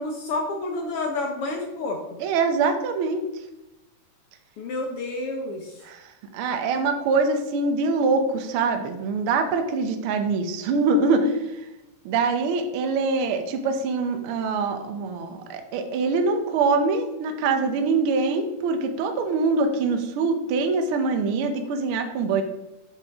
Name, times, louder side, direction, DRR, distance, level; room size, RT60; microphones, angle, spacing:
voice 1, 0.0-2.2 4.6-5.8, left 2 dB, 70° left, 2 dB, 1.4 m, -29 dB
voice 2, 2.2-3.3 5.8-6.0 6.3-11.4 12.0-22.4, right 4 dB, 80° right, 6 dB, 1.2 m, -24 dB
8.3 x 6.8 x 3.5 m, 1.0 s
omnidirectional pair, 3.6 m